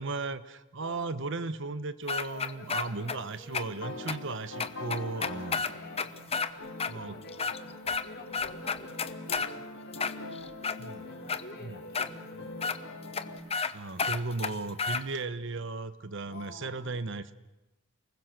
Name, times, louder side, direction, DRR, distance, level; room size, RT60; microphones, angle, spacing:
voice 1, 0.0-5.6 6.9-7.2 10.8-11.0 11.6-11.8 12.4-12.5 13.7-17.3, right 3 dB, 60° right, 13 dB, 1.1 m, -36 dB
voice 2, 0.8-1.2 2.2-3.7 5.1-12.8 16.3-17.1, left 2 dB, 50° left, 1 dB, 5.0 m, -50 dB
sound 1, 2.1-3.2 3.5-3.6 4.1-4.2 4.6-6.5 6.8-6.9 7.3-8.1 8.3-9.5 9.9-10.8 11.3-11.4 11.9-12.1 12.6-12.8 13.1-13.2 13.5-13.7 14.0-15.0, left 5 dB, 30° left, 0.9 m, -31 dB
sound 2, 3.5-13.4, left 2 dB, 80° left, 4.8 m, -43 dB
29.0 x 20.5 x 6.7 m, 1.0 s
head